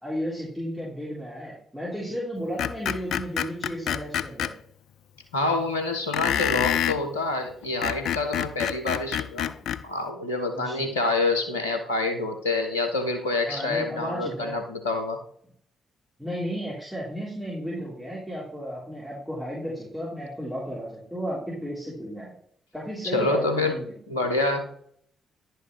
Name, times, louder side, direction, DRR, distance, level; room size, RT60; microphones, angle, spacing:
voice 1, 0.0-4.5 10.5-10.9 13.4-14.6 16.2-22.3 22.7-23.9, equal, ahead, -8 dB, 3.3 m, -33 dB
Screech, 2.6-4.5 6.1-7.0 7.6-9.8, left 10 dB, 65° left, 0.3 m, -27 dB
voice 2, 5.3-9.5 9.8-15.2 23.1-23.8 24.1-24.7, left 2 dB, 90° left, 4 dB, 0.9 m, -27 dB
10.5 x 4.8 x 3.1 m, 0.62 s
figure-of-eight pair, 40°, 0 cm